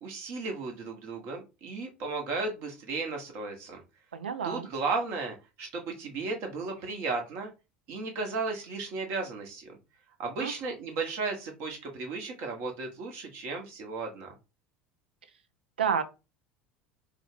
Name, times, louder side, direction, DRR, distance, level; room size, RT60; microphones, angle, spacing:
voice 1, 0.0-3.8 4.4-7.5 7.9-9.8 10.2-14.3, right 4 dB, 50° right, 1.2 m, -35 dB
voice 2, 4.1-4.7 10.4-10.7 15.8-16.0, right 7 dB, 75° right, 0.5 m, -30 dB
4.7 x 2.4 x 3.3 m
figure-of-eight pair, 70°, 6 cm